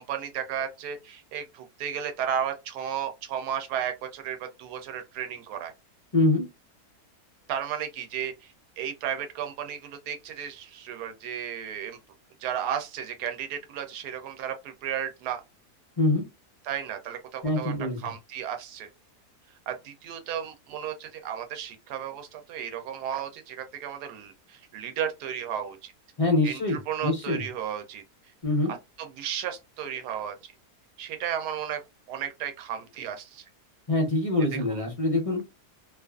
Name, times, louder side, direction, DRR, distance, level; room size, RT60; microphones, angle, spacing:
voice 1, 0.0-5.7 7.5-12.0 12.4-15.4 16.6-18.9 19.7-25.9 26.4-28.0 29.0-30.5 31.0-31.8 32.1-33.4 34.5-34.8, right 9 dB, 80° right, 1.1 m, -34 dB
voice 2, 6.1-6.5 16.0-16.2 17.4-18.1 26.2-27.4 28.4-28.7 33.9-35.4, left 2 dB, 50° left, 0.4 m, -24 dB
2.6 x 2.4 x 2.3 m
omnidirectional pair, 1.7 m